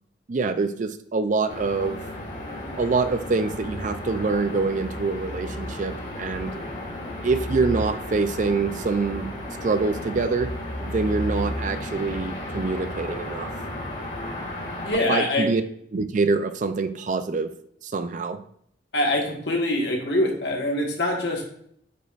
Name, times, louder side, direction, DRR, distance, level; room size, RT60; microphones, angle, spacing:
voice 1, 0.3-2.0 2.8-6.6 7.2-9.3 9.6-10.5 10.8-13.5 15.1-15.6 15.9-17.5 17.8-18.4, right 4 dB, 40° right, 11 dB, 0.4 m, -25 dB
sound 1, 1.5-14.9, left 1 dB, 45° left, 2.3 m, -33 dB
voice 2, 14.8-15.5 18.9-21.4, left 1 dB, 60° left, 0 dB, 1.6 m, -24 dB
8.7 x 5.1 x 2.5 m, 0.68 s
head